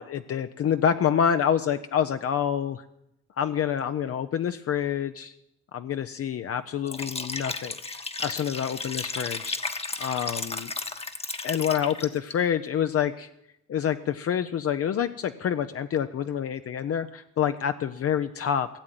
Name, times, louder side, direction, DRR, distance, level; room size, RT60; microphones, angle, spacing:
voice 1, 0.0-2.8 3.4-5.3 5.7-9.6 10.0-10.7 11.4-13.3 13.7-18.7, left 8 dB, 50° left, 9 dB, 0.6 m, -27 dB
Liquid, 6.8-12.3, left 3 dB, 20° left, 1.1 m, -34 dB
16.0 x 7.7 x 9.1 m, 0.82 s
cardioid pair, 90°, 30 cm